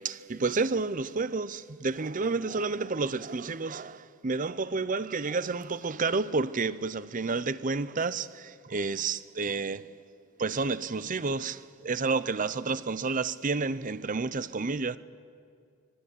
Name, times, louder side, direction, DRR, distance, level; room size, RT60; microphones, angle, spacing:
voice 1, 0.0-9.9 10.4-15.0, right 4 dB, 40° right, 0.7 m, -30 dB
25.5 x 21.5 x 8.4 m
head